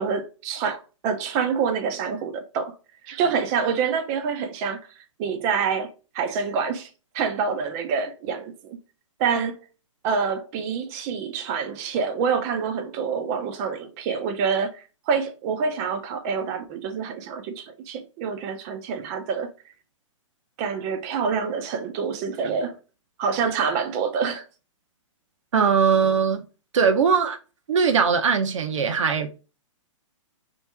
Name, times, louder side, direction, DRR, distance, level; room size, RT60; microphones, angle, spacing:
voice 1, 0.0-2.7 3.0-4.8 5.2-6.9 7.1-8.8 9.2-9.7 10.0-19.5 20.6-22.7 23.2-24.4, right 6 dB, 30° right, 0.7 m, -27 dB
voice 2, 25.5-26.4 26.7-27.4 27.7-29.3, right 6 dB, 70° right, 1.0 m, -20 dB
3.4 x 3.1 x 3.4 m
hypercardioid pair, 150°, 17 cm